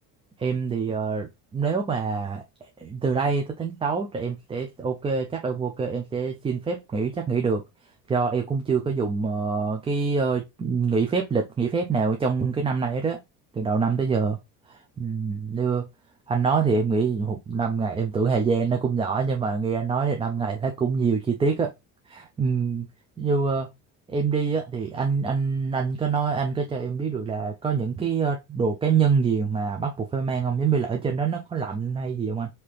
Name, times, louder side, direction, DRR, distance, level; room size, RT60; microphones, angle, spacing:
voice 1, 0.4-7.7 8.1-13.2 13.5-14.4 15.0-15.9 16.3-21.7 22.1-22.9 23.2-23.7 24.1-32.5, right 5 dB, 15° right, 0.5 m, -25 dB
5.6 x 2.9 x 3.3 m
cardioid pair, 135°, 36 cm